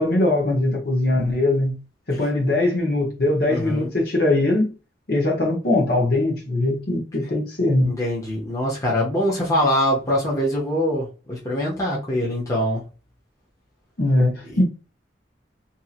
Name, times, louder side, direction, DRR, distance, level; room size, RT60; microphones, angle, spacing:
voice 1, 0.0-1.7 2.1-4.7 5.1-7.9 14.0-14.6, left 2 dB, 55° left, 0.9 m, -21 dB
voice 2, 3.5-3.9 7.8-12.8 14.5-14.6, left 1 dB, 15° left, 0.7 m, -23 dB
2.7 x 2.7 x 2.4 m
head